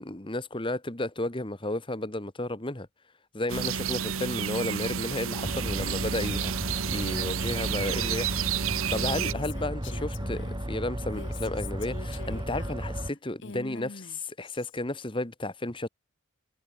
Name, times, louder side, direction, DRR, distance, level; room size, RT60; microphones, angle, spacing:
voice 1, 0.0-2.9 3.3-15.9, left 1 dB, 25° left, 1.5 m, -33 dB
sound 1, 3.5-9.3, right 8 dB, 70° right, 0.9 m, -31 dB
sound 2, 5.4-13.1, equal, 20° right, 2.5 m, -34 dB
Female speech woman speaking, 8.8-10.6 11.0-14.8, left 4 dB, 55° left, 1.1 m, -44 dB
head